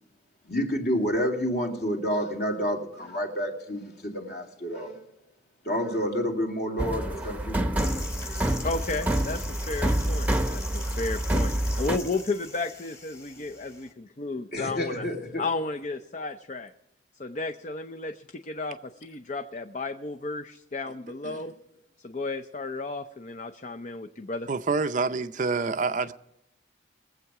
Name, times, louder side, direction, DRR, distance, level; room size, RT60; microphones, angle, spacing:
voice 1, 0.5-5.0 5.6-8.5 14.5-15.5, equal, 55° left, 2.5 m, -29 dB
sound 1, 6.8-12.0, right 1 dB, 10° right, 0.8 m, -27 dB
sound 2, 7.8-13.9, left 3 dB, 15° left, 1.4 m, -42 dB
voice 2, 8.6-15.1 15.4-16.7 17.2-21.5 22.0-24.5, left 3 dB, 40° left, 0.6 m, -33 dB
voice 3, 24.5-26.1, right 4 dB, 40° right, 0.5 m, -27 dB
22.0 x 8.0 x 4.8 m
head